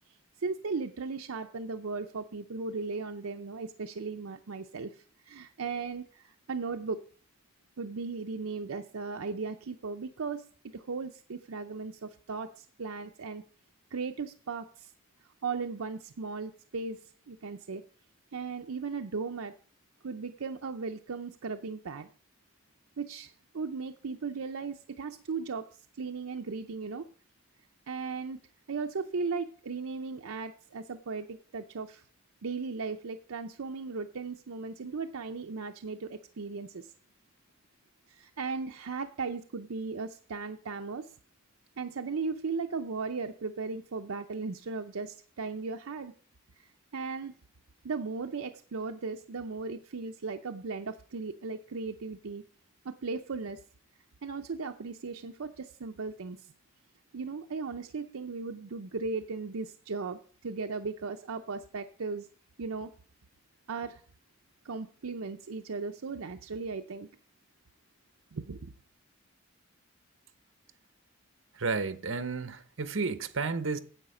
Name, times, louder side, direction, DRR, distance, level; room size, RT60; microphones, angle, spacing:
voice 1, 0.4-7.0 7.8-10.4 10.7-13.4 13.9-14.9 15.4-17.0 17.3-17.8 18.3-19.5 20.0-22.1 23.0-25.7 26.0-27.1 27.9-28.4 28.7-32.0 32.4-36.9 38.1-41.1 41.8-46.1 46.6-47.3 47.8-52.4 52.8-53.6 54.2-56.5 57.1-62.3 62.6-62.9 63.7-64.0 64.6-67.1 68.3-68.6, right 4 dB, 90° right, 0.6 m, -37 dB
voice 2, 71.5-73.8, right 4 dB, 70° right, 1.0 m, -32 dB
9.8 x 7.9 x 4.9 m
head